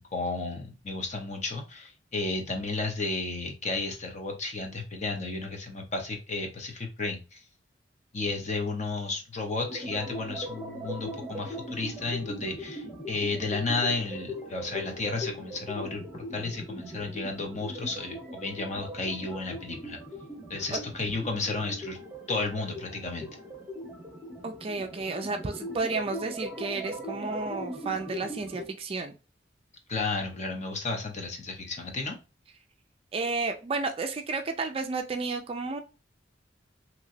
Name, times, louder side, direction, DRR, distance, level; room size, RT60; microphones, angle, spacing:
voice 1, 0.0-7.4 8.1-20.0 20.5-22.0 22.3-23.4 29.9-32.2, left 3 dB, 40° left, 3 dB, 0.8 m, -33 dB
sound 1, 9.6-28.6, equal, 10° right, 1.0 m, -40 dB
voice 2, 24.4-29.2 33.1-35.8, right 3 dB, 30° right, 6 dB, 0.3 m, -32 dB
2.9 x 2.8 x 2.6 m, 0.30 s
head